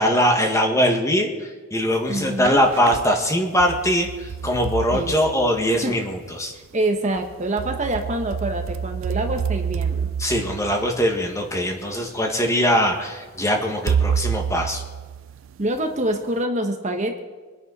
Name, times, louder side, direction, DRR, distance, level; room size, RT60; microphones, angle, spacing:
voice 1, 0.0-6.5 10.2-14.8, equal, 15° left, 2 dB, 1.9 m, -21 dB
voice 2, 2.1-2.6 4.9-5.1 5.8-5.9 6.5-10.1 15.6-17.2, right 1 dB, 35° right, 4 dB, 1.2 m, -26 dB
sound 1, 2.1-3.1 3.6-6.0 7.2-11.6 12.4-12.5 13.9-15.8, right 7 dB, 70° right, 0.3 m, -28 dB
24.5 x 10.0 x 4.2 m, 1.4 s
head